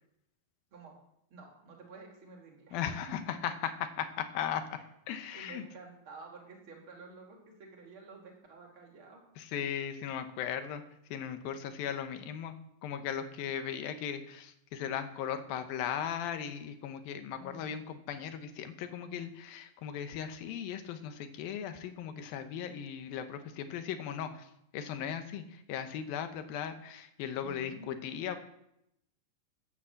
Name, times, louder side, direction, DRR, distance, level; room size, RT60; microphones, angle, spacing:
voice 1, 1.3-3.1 5.3-9.2 17.3-17.7 27.4-28.3, right 3 dB, 40° right, 0 dB, 3.3 m, -51 dB
voice 2, 2.7-4.6 5.1-5.6 9.4-10.8 11.1-12.5 12.8-28.4, left 8 dB, 85° left, 8 dB, 2.9 m, -37 dB
10.5 x 9.9 x 7.2 m, 0.79 s
omnidirectional pair, 4.0 m